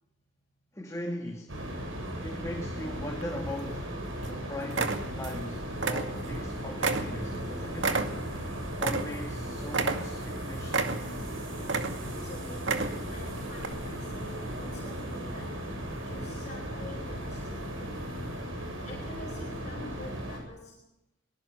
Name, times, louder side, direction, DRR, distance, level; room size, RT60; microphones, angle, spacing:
voice 1, 0.7-1.6 2.2-8.1 8.8-10.9, left 1 dB, 15° left, 2.4 m, -40 dB
sound 1, 1.5-20.4, equal, 90° right, 8.0 m, -37 dB
sound 2, 3.2-3.8 4.2-4.4 4.7-5.4 5.7-6.5 6.8-9.4 9.7-10.3 10.7-11.3 11.6-12.2 12.6-13.2 13.6-13.7, right 4 dB, 70° right, 2.3 m, -30 dB
voice 2, 12.1-18.1 18.8-20.9, left 2 dB, 40° left, 4.6 m, -47 dB
23.0 x 20.5 x 7.0 m
head